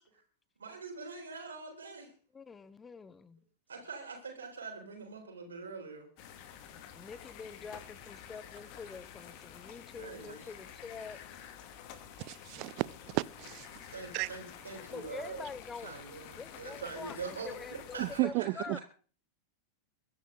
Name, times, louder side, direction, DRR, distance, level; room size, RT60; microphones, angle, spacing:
voice 1, 0.6-2.1 3.7-6.1 7.5-7.6 10.0-10.4 13.9-15.4 15.8-17.5 17.9-18.6, right 4 dB, 70° right, 4.2 m, -44 dB
voice 2, 2.3-3.4 6.7-11.4 14.9-18.8, left 5 dB, 15° left, 1.1 m, -46 dB
sound 1, 6.2-18.2, left 9 dB, 45° left, 2.4 m, -50 dB
voice 3, 12.2-13.7 14.1-14.3 18.0-18.8, right 23 dB, 45° right, 0.6 m, -33 dB
23.5 x 10.5 x 4.0 m
figure-of-eight pair, 90°, 0 cm